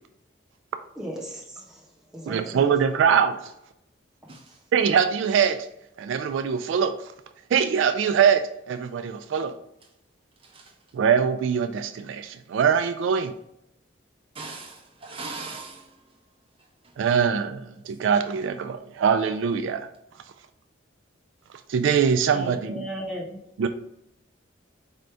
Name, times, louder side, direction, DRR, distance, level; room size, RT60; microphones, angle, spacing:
voice 1, 1.0-1.8 2.1-2.6 22.3-23.4, equal, 5° right, 0.9 m, -36 dB
voice 2, 2.3-3.4 4.7-5.6 6.0-6.9 7.5-9.5 10.9-13.3 17.0-17.6 18.0-19.9 21.7-22.9 23.6-23.7, right 7 dB, 75° right, 0.3 m, -22 dB
voice 3, 4.3-4.7 9.8-9.9 10.4-11.0 14.3-16.2 16.6-17.2 17.6-17.9, right 3 dB, 30° right, 0.7 m, -41 dB
4.5 x 2.6 x 3.3 m
head